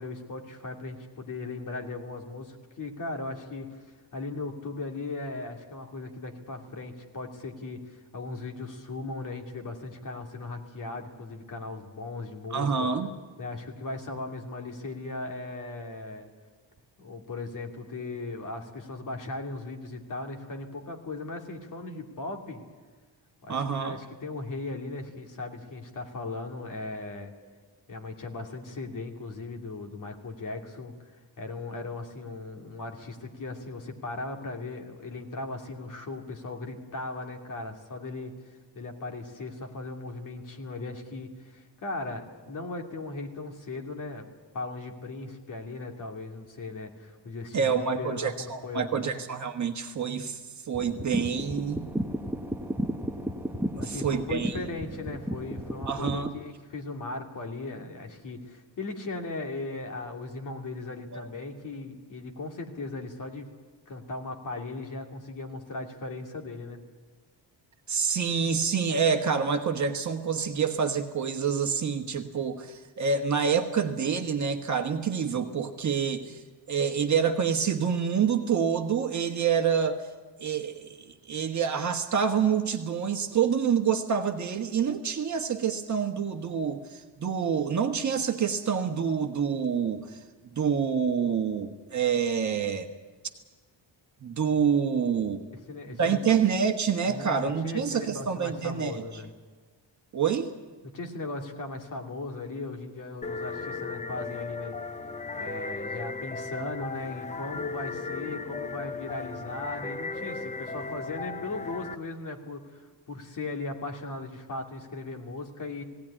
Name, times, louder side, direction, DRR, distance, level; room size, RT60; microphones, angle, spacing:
voice 1, 0.0-12.9 13.4-16.3 17.0-22.6 23.4-27.3 27.9-30.9 31.4-44.3 44.5-49.2 53.8-63.5 63.9-66.8 95.7-96.4 97.1-99.3 100.9-104.8 105.4-115.8, left 3 dB, 45° left, 3 dB, 2.6 m, -38 dB
voice 2, 12.5-13.1 23.5-24.0 47.5-51.9 53.8-54.6 55.9-56.3 61.1-61.3 67.9-76.4 76.7-80.0 80.4-90.2 90.5-92.9 94.2-95.5 96.0-99.0 100.1-100.5, right 6 dB, 40° right, 5 dB, 1.4 m, -27 dB
sound 1, 50.7-56.3, equal, 5° right, 0.9 m, -33 dB
sound 2, 103.2-112.0, left 4 dB, 15° left, 0.6 m, -36 dB
19.0 x 17.5 x 10.0 m, 1.4 s
wide cardioid pair, 180°, 45 cm